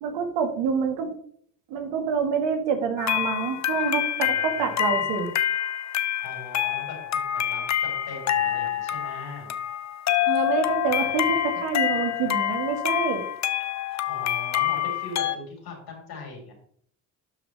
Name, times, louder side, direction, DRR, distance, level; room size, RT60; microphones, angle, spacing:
voice 1, 0.0-1.1 1.7-5.3 10.3-13.2, right 6 dB, 80° right, 6 dB, 1.7 m, -27 dB
sound 1, 3.0-15.4, left 11 dB, 40° left, 0.7 m, -26 dB
voice 2, 4.2-5.2 6.2-9.5 13.9-16.5, left 3 dB, 60° left, 1 dB, 4.0 m, -40 dB
12.0 x 5.1 x 3.2 m, 0.62 s
supercardioid pair, 70°, 43 cm